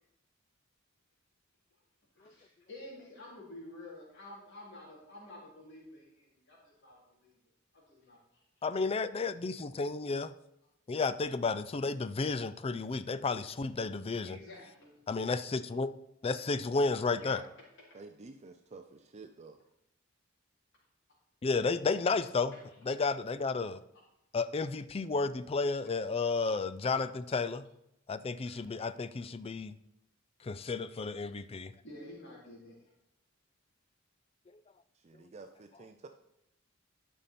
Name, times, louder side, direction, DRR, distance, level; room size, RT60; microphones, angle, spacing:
voice 1, 2.1-7.4 7.7-8.6 14.2-15.0 17.2-17.4 22.5-22.6 26.8-26.9 28.4-28.6 31.8-32.9, left 1 dB, 60° left, -5 dB, 3.2 m, -50 dB
voice 2, 8.6-10.3 10.9-14.4 15.1-15.9 16.2-17.4 21.4-22.5 22.9-23.8 24.3-27.7 28.1-29.7 30.4-31.7, left 4 dB, 30° left, 13 dB, 0.4 m, -32 dB
voice 3, 17.9-19.6 34.9-36.1, right 3 dB, 35° right, 7 dB, 0.5 m, -51 dB
12.0 x 5.5 x 4.2 m, 0.80 s
head